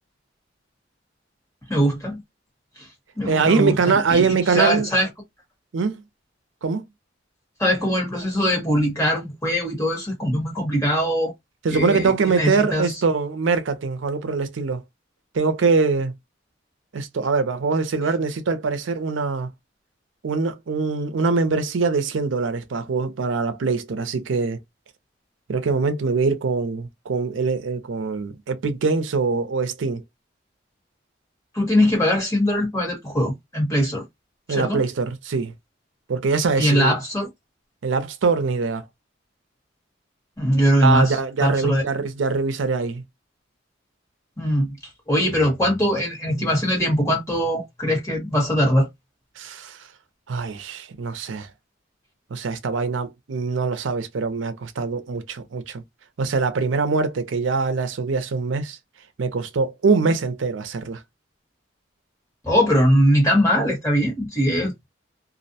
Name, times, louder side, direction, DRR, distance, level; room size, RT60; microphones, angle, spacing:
voice 1, 1.7-2.2 2.8-2.9 3.2-5.1 7.6-11.3 11.7-12.9 31.5-34.0 34.5-34.8 36.6-37.3 40.4-41.8 44.4-44.8 45.1-48.9 62.4-64.9, equal, 15° left, 1.2 m, -21 dB
voice 2, 3.3-4.9 5.7-6.0 6.6-6.8 11.6-14.8 15.3-16.1 16.9-19.5 20.2-24.6 25.5-30.0 34.5-35.5 36.1-36.9 37.8-38.9 40.8-43.0 46.3-46.5 49.4-49.9 50.3-51.5 52.3-55.8 56.2-58.8 59.2-61.0, right 4 dB, 80° right, 0.5 m, -23 dB
2.4 x 2.1 x 2.7 m
head